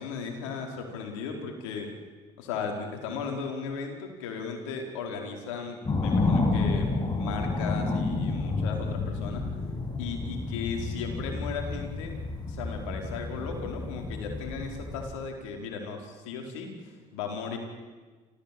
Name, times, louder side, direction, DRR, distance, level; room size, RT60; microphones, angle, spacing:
voice 1, 0.0-1.9 2.4-9.5 10.0-12.2 12.5-17.6, left 5 dB, 90° left, 2 dB, 4.7 m, -36 dB
sound 1, 5.9-15.2, left 3 dB, 25° left, 6.4 m, -30 dB
29.0 x 15.5 x 8.7 m, 1.4 s
supercardioid pair, 75°, 16 cm